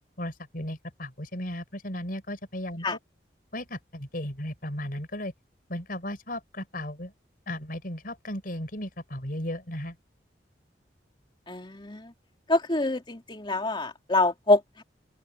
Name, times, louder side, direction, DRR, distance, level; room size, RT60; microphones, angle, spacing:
voice 1, 0.2-2.9 3.5-5.3 5.7-7.1 7.5-10.0, left 1 dB, 55° left, 5.5 m, -35 dB
voice 2, 11.5-12.1 12.5-14.8, left 2 dB, 30° left, 3.0 m, -26 dB
open air
head